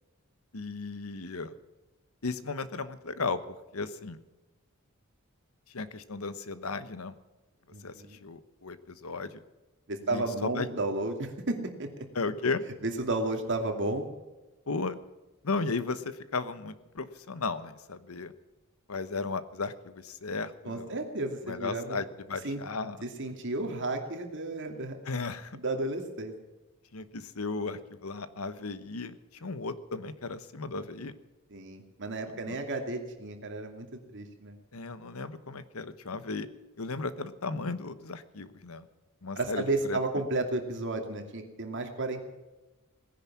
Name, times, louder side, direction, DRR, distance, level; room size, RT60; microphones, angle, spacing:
voice 1, 0.5-1.5 2.2-4.2 5.7-7.2 7.8-9.4 10.1-10.7 12.1-12.6 14.7-15.0 15.4-18.3 18.9-21.0 21.4-23.0 25.0-25.6 26.9-31.1 32.3-32.6 34.7-36.5 36.8-38.9 39.2-40.0, left 4 dB, 85° left, 13 dB, 1.1 m, -35 dB
voice 2, 7.7-8.2 9.9-12.1 12.8-14.1 20.7-22.0 22.4-22.6 23.0-25.0 25.6-26.3 31.5-34.6 39.4-42.2, right 2 dB, 60° right, 4 dB, 2.5 m, -33 dB
18.0 x 10.5 x 7.3 m, 1.1 s
head